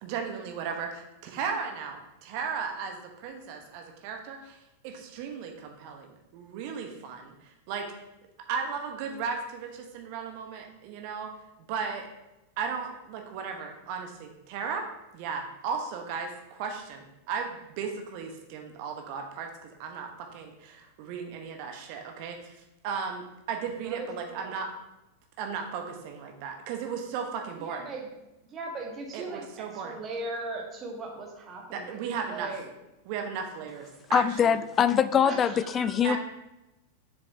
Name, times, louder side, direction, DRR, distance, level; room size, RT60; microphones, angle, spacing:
voice 1, 0.0-7.8 8.5-11.3 11.7-12.1 12.6-14.9 15.1-24.7 25.4-27.8 29.1-30.0 31.7-32.5 33.0-34.6 36.0-36.2, right 6 dB, 45° right, 3 dB, 1.2 m, -36 dB
voice 2, 23.8-24.6 27.6-28.1 28.4-32.0 32.2-32.7 35.2-36.2, right 2 dB, 25° right, 0 dB, 1.7 m, -39 dB
voice 3, 34.1-36.2, left 8 dB, 25° left, 15 dB, 0.3 m, -23 dB
7.1 x 6.7 x 2.9 m, 0.96 s
figure-of-eight pair, 90°, 0 cm